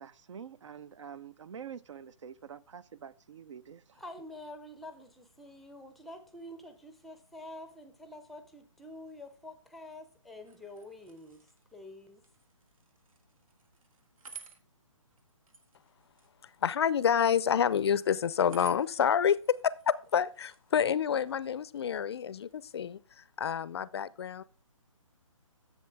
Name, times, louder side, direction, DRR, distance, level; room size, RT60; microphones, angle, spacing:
voice 1, 0.0-3.8, right 7 dB, 60° right, 0.5 m, -46 dB
voice 2, 3.9-12.2, left 1 dB, ahead, 0.6 m, -47 dB
sound 1, 10.4-22.8, right 6 dB, 80° right, 1.5 m, -57 dB
voice 3, 16.6-24.4, left 8 dB, 50° left, 0.4 m, -28 dB
11.0 x 7.4 x 3.4 m
hypercardioid pair, 150°, 18 cm